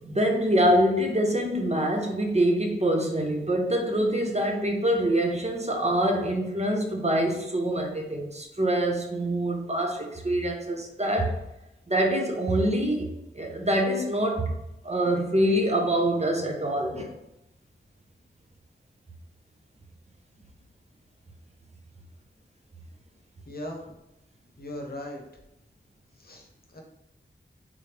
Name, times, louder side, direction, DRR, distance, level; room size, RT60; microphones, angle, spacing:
voice 1, 0.0-11.3 11.9-14.5 14.8-17.1, right 1 dB, 35° right, 2 dB, 0.7 m, -25 dB
voice 2, 23.5-24.0 24.6-25.3 26.2-26.8, left 1 dB, 50° left, 1 dB, 0.9 m, -39 dB
3.8 x 3.1 x 3.3 m, 0.91 s
wide cardioid pair, 55°, 20 cm